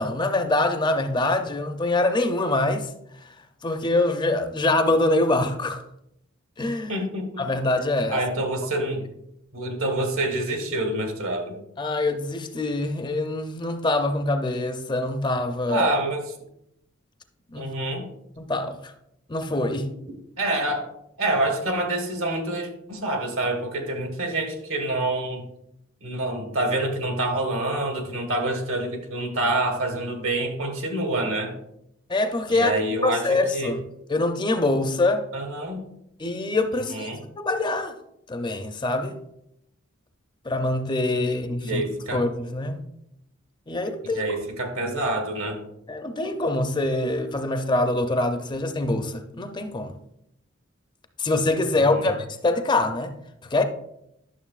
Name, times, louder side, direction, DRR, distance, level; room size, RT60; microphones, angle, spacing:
voice 1, 0.0-2.9 3.6-5.8 6.6-6.9 7.4-8.2 11.8-15.9 17.5-17.7 18.4-18.9 19.3-19.9 32.1-32.7 33.0-33.8 34.1-35.3 36.2-37.1 37.4-37.9 38.3-39.2 40.4-41.8 42.1-42.8 43.7-44.2 45.9-50.0 51.2-53.1 53.5-53.6, left 2 dB, 20° left, 0.5 m, -24 dB
voice 2, 6.9-7.4 8.1-9.0 9.5-11.6 15.7-16.3 17.6-18.1 20.4-20.9 21.2-25.5 26.0-31.5 32.5-33.7 35.3-35.8 36.9-37.2 41.6-42.2 44.0-45.6 51.8-52.2, right 1 dB, 80° right, 1.7 m, -27 dB
11.0 x 6.5 x 2.4 m
head